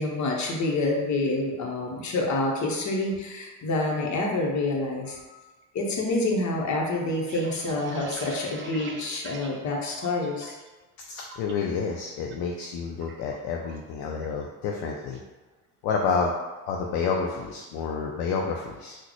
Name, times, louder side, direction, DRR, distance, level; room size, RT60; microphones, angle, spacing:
voice 1, 0.0-5.4 5.7-10.6, left 2 dB, 40° left, -1 dB, 0.9 m, -27 dB
sound 1, 7.3-10.7 11.0-11.5 11.9-12.4 12.6-13.9 14.2-14.5 14.8-15.3, right 4 dB, 30° right, 0.4 m, -44 dB
voice 2, 11.1-15.2 15.8-16.3 16.7-19.0, left 5 dB, 60° left, 0 dB, 0.5 m, -29 dB
3.7 x 2.2 x 3.0 m, 1.2 s
hypercardioid pair, 65°, 42 cm